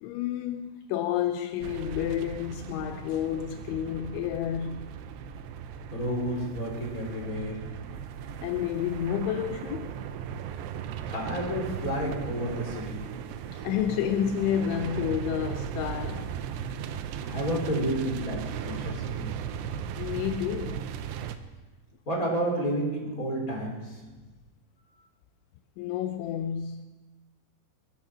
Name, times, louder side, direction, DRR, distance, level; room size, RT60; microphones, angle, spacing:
voice 1, 0.0-4.9 8.4-10.0 13.5-16.4 20.0-20.9 25.8-26.9, left 9 dB, 85° left, 3.0 m, -30 dB
sound 1, 1.6-21.4, right 8 dB, 80° right, 2.7 m, -37 dB
voice 2, 5.9-7.8 11.1-13.0 17.2-19.3 22.1-24.0, equal, 20° left, 3.8 m, -31 dB
21.5 x 11.0 x 6.0 m
omnidirectional pair, 5.4 m